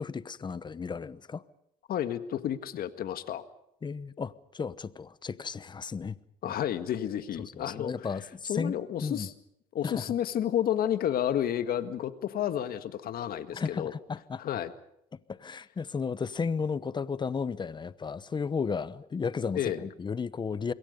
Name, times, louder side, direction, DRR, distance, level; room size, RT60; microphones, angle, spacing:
voice 1, 0.0-1.4 3.8-6.2 6.4-6.6 7.5-8.8 9.0-9.3 9.8-10.1 13.5-14.4 15.3-20.7, left 5 dB, 25° left, 1.0 m, -34 dB
voice 2, 1.9-3.4 6.4-7.9 8.5-9.3 9.7-13.9 14.4-14.7 19.5-19.9, left 10 dB, 60° left, 1.7 m, -31 dB
27.0 x 22.0 x 5.3 m
cardioid pair, 110°, 17 cm